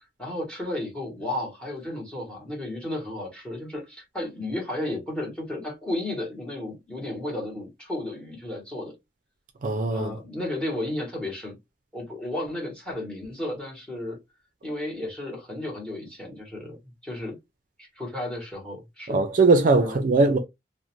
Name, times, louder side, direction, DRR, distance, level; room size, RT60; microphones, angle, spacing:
voice 1, 0.0-8.9 9.9-11.5 11.9-14.2 14.6-16.8 17.0-17.4 17.8-19.2 19.8-20.0, left 1 dB, 5° left, 1.1 m, -33 dB
voice 2, 9.6-10.1 19.1-20.4, right 3 dB, 50° right, 0.4 m, -20 dB
2.5 x 2.0 x 2.9 m
head